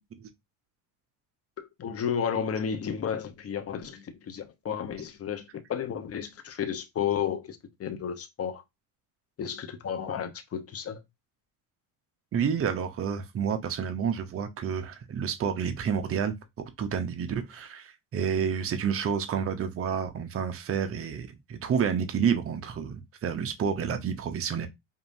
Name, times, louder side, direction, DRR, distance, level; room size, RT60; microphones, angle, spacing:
voice 1, 1.6-8.6 9.4-11.0, left 8 dB, 35° left, 0.9 m, -32 dB
voice 2, 12.3-24.7, right 7 dB, 30° right, 0.8 m, -29 dB
5.2 x 2.6 x 2.6 m
supercardioid pair, 95°, 43 cm